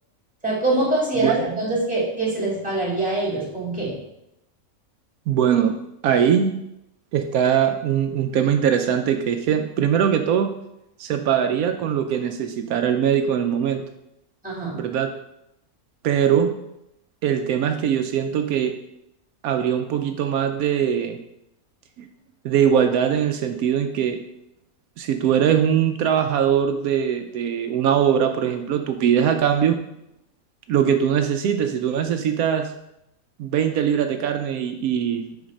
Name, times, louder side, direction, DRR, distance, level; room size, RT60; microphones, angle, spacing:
voice 1, 0.4-4.0 14.4-14.8, right 2 dB, 5° right, -5 dB, 2.2 m, -24 dB
voice 2, 5.3-5.8 6.0-6.5 7.1-10.5 11.0-13.8 14.7-15.1 16.0-16.5 17.2-18.8 19.4-21.2 22.0-22.1 22.4-24.2 25.0-29.8 30.7-32.7 33.4-35.3, right 8 dB, 80° right, 6 dB, 1.0 m, -21 dB
7.1 x 4.1 x 5.2 m, 0.84 s
omnidirectional pair, 1.5 m